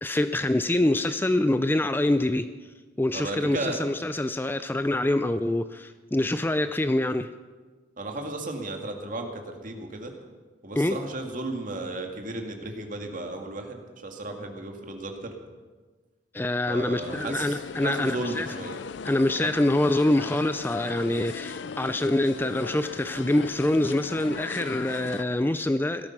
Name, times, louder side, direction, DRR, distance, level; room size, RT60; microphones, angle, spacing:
voice 1, 0.0-2.5 3.0-7.3 10.8-11.0 16.3-18.5 19.0-26.1, left 1 dB, 10° left, 11 dB, 0.4 m, -25 dB
voice 2, 3.1-3.8 8.0-10.1 10.6-15.3 16.7-18.8, right 2 dB, 45° right, 3 dB, 2.2 m, -34 dB
sound 1, 17.0-25.2, left 5 dB, 70° left, 0.5 m, -38 dB
17.0 x 13.5 x 6.0 m, 1.4 s
head